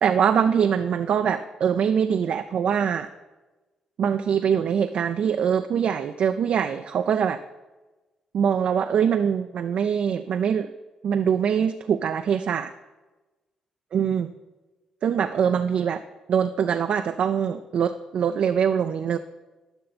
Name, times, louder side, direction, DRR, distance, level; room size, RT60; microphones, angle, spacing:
voice 1, 0.0-3.1 4.0-7.4 8.3-10.7 11.0-12.7 13.9-14.3 15.0-16.0 16.3-19.2, right 7 dB, 65° right, 7 dB, 0.4 m, -23 dB
11.5 x 5.5 x 4.2 m, 1.1 s
supercardioid pair, 60°, 2 cm